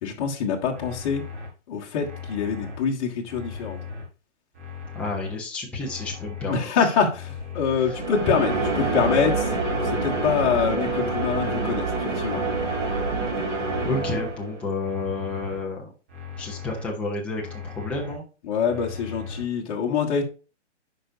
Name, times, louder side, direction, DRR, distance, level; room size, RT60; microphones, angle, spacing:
voice 1, 0.0-1.2 1.7-3.8 6.5-12.4 18.5-20.2, left 6 dB, 30° left, -2 dB, 1.5 m, -25 dB
sound 1, 0.7-1.5 2.0-2.8 3.3-4.0 4.5-5.3 5.8-6.6 7.1-7.9 8.4-9.2 9.7-10.5 11.0-11.7 12.2-13.0 13.5-14.3 14.8-15.6 16.1-16.9 17.4-18.1 18.6-19.4, left 6 dB, 20° right, 1.9 m, -37 dB
voice 2, 4.9-6.9 7.9-8.0 13.8-15.9 16.4-18.2, left 3 dB, 5° left, -2 dB, 0.8 m, -31 dB
sound 2, 7.8-14.7, right 3 dB, 90° right, 2.9 m, -27 dB
9.8 x 5.2 x 2.7 m, 0.35 s
hypercardioid pair, 160°, 36 cm